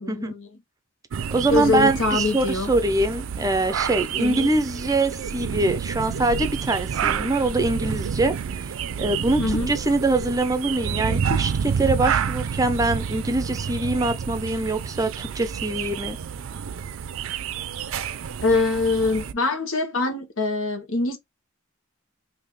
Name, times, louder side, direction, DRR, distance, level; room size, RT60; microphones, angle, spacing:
voice 1, 0.0-0.5 1.5-2.7 4.2-4.5 9.4-9.7 18.4-21.2, left 3 dB, 75° left, 1.2 m, -24 dB
sound 1, 1.1-19.3, right 7 dB, 80° right, 0.4 m, -29 dB
voice 2, 1.3-16.2, right 2 dB, 15° right, 0.6 m, -24 dB
3.7 x 2.7 x 3.1 m
head